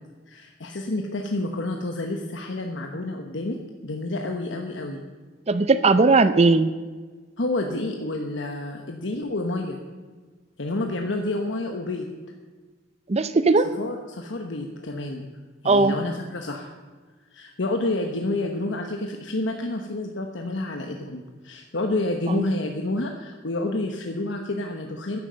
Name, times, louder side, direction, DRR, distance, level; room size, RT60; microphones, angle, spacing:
voice 1, 0.3-3.6 3.8-5.0 7.4-9.8 10.6-12.1 13.8-15.3 15.6-16.7 17.3-25.2, left 2 dB, 70° left, 3 dB, 1.1 m, -29 dB
voice 2, 5.5-6.7 13.1-13.6 15.7-15.9, right 3 dB, 35° right, 12 dB, 0.5 m, -18 dB
11.0 x 10.5 x 7.6 m, 1.4 s
head